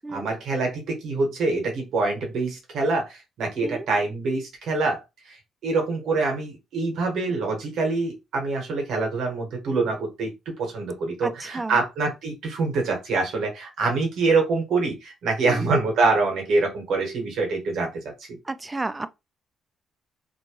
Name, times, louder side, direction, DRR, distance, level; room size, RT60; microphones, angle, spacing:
voice 1, 0.1-5.4 5.6-17.9 18.3-18.4, right 3 dB, 75° right, 1.4 m, -25 dB
voice 2, 11.2-11.8 15.5-15.7 18.4-19.1, right 2 dB, 20° right, 0.4 m, -32 dB
2.9 x 2.2 x 3.0 m
cardioid pair, 90°, 0 cm